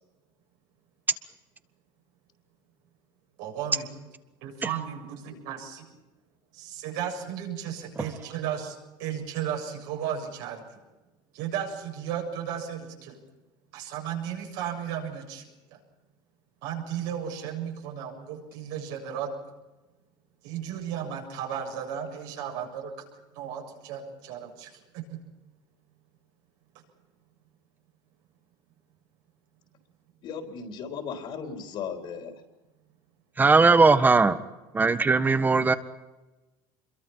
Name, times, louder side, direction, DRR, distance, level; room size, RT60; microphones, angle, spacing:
voice 1, 3.4-3.9 4.4-5.9 6.5-8.7 9.0-10.8 11.3-13.2 13.7-15.4 15.7-15.8 16.6-19.4 20.4-22.9 23.3-25.2, right 9 dB, 80° right, 1 dB, 7.3 m, -34 dB
voice 2, 30.2-32.3, left 6 dB, 55° left, 4 dB, 3.9 m, -36 dB
voice 3, 33.4-34.4 34.7-35.7, right 4 dB, 20° right, 12 dB, 1.5 m, -19 dB
26.0 x 23.0 x 5.8 m, 1.1 s
supercardioid pair, 115°, 10 cm